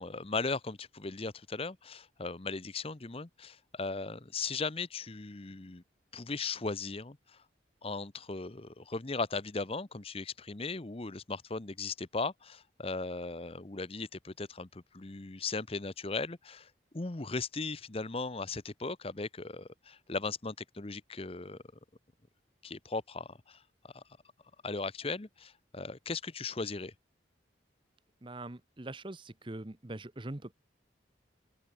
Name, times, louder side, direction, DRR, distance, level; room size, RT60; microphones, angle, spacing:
voice 1, 0.0-5.8 6.1-7.4 7.8-21.6 22.6-24.0 24.6-26.9, left 3 dB, 30° left, 0.8 m, -38 dB
voice 2, 28.2-30.5, right 2 dB, 25° right, 0.9 m, -42 dB
head